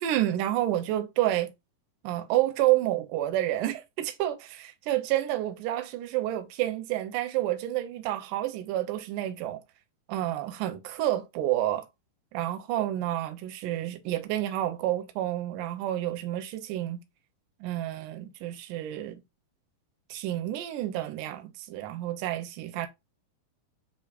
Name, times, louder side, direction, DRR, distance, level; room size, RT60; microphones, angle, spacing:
voice 1, 0.0-1.5 2.0-9.6 10.1-11.9 12.3-17.0 17.6-19.2 20.1-22.9, right 14 dB, 80° right, 2.1 m, -29 dB
6.5 x 2.9 x 2.4 m
omnidirectional pair, 3.9 m